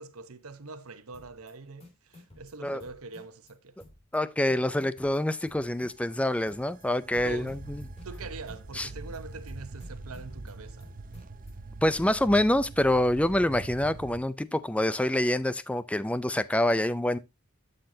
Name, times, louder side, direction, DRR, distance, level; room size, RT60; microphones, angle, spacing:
voice 1, 0.0-3.8 7.2-7.6 8.0-11.0, right 3 dB, 85° right, 1.0 m, -43 dB
sound 1, 1.1-1.5 1.8-3.5 3.8-4.2 4.5-6.2 6.5-6.9 7.1-8.9 9.1-9.5 9.8-11.5, left 2 dB, 30° left, 3.1 m, -53 dB
voice 2, 4.1-7.8 8.7-8.9 11.8-17.2, left 1 dB, 5° left, 0.4 m, -26 dB
sound 2, 5.7-14.2, right 2 dB, 40° right, 0.7 m, -43 dB
12.0 x 6.6 x 2.7 m
head